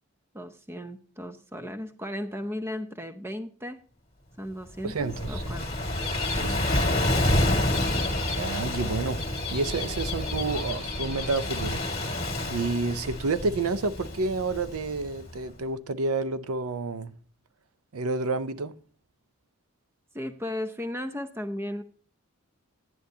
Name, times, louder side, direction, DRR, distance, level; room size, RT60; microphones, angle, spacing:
voice 1, 0.3-3.8 4.4-5.8 6.4-6.5 7.5-8.1 20.1-21.8, left 1 dB, 10° right, 0.6 m, -36 dB
Gull seagull / Waves surf, 4.8-15.3, left 1 dB, 30° left, 1.9 m, -28 dB
voice 2, 4.8-5.4 6.4-6.8 8.4-9.2 9.5-11.8 12.5-17.1 17.9-18.8, right 3 dB, 75° right, 0.6 m, -29 dB
10.5 x 10.5 x 2.7 m
head